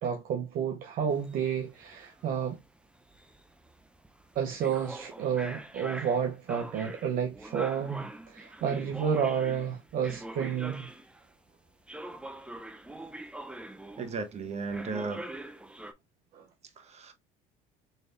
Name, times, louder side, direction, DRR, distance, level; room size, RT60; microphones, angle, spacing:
voice 1, 0.0-2.6 4.4-10.9 16.3-16.4, right 7 dB, 55° right, 0.7 m, -31 dB
sound 1, 1.1-11.3 11.9-14.3 14.7-15.9, right 1 dB, 5° right, 0.6 m, -44 dB
voice 2, 14.0-15.2 16.8-17.1, right 4 dB, 40° right, 1.1 m, -35 dB
4.1 x 3.2 x 2.5 m
supercardioid pair, 85°, 17 cm